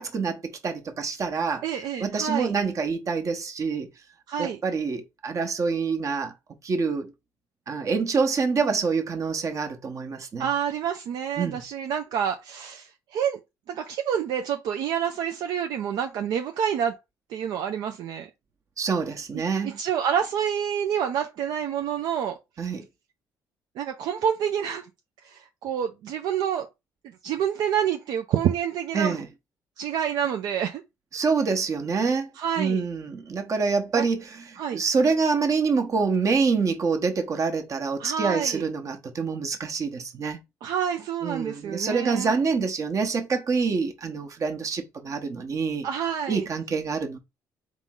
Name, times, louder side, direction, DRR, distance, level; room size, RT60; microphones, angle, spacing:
voice 1, 0.0-1.6 2.0-3.9 4.4-6.3 6.6-7.1 7.7-10.5 11.4-11.6 18.8-19.8 22.6-22.8 28.9-29.3 31.1-32.3 32.6-40.4 41.2-45.9 46.3-47.2, right 5 dB, 45° right, 1.1 m, -26 dB
voice 2, 1.6-2.5 4.3-4.6 10.4-13.4 13.7-17.0 17.3-18.3 19.6-22.4 23.8-24.9 25.2-26.7 27.2-29.2 29.8-30.8 32.4-32.8 33.9-34.1 34.6-34.8 38.0-38.7 40.6-42.4 45.8-46.5, right 8 dB, 70° right, 0.5 m, -28 dB
3.7 x 3.1 x 3.7 m
supercardioid pair, 75°, 7 cm